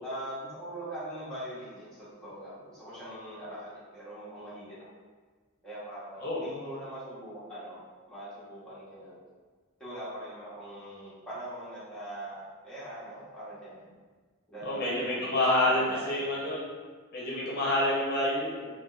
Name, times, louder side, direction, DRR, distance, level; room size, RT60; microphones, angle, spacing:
voice 1, 0.0-4.9 5.6-9.2 9.8-13.8 14.5-15.3 15.6-16.2, right 1 dB, 5° left, -12 dB, 1.0 m, -42 dB
voice 2, 14.6-16.7 17.1-18.7, left 1 dB, 50° left, -7 dB, 0.7 m, -28 dB
3.6 x 2.3 x 2.4 m, 1.4 s
head